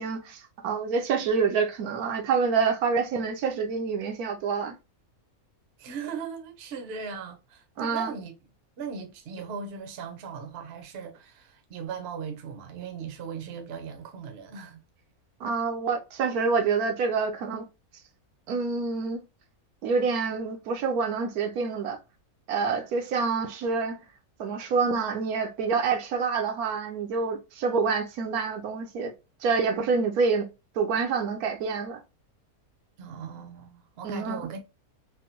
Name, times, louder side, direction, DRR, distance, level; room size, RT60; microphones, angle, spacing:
voice 1, 0.0-4.8 7.8-8.1 15.4-17.7 18.5-19.2 19.8-22.0 22.5-24.0 24.4-29.1 29.4-30.5 30.7-32.0 34.0-34.4, right 5 dB, 80° right, 1.1 m, -27 dB
voice 2, 5.8-8.3 8.8-14.8 33.0-34.6, right 6 dB, 55° right, 0.8 m, -38 dB
3.5 x 2.1 x 2.8 m
omnidirectional pair, 1.5 m